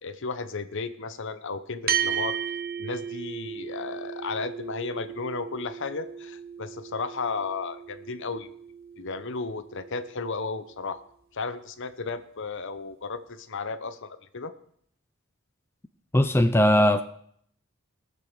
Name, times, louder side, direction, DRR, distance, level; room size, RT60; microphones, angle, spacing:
voice 1, 0.0-2.4 2.8-8.5 9.0-11.0 11.3-14.5, left 4 dB, 60° left, 12 dB, 0.9 m, -34 dB
sound 1, 1.9-10.5, right 9 dB, 45° right, 0.9 m, -35 dB
voice 2, 16.1-17.0, left 1 dB, 10° left, 8 dB, 0.5 m, -19 dB
18.5 x 6.9 x 6.3 m, 0.66 s
head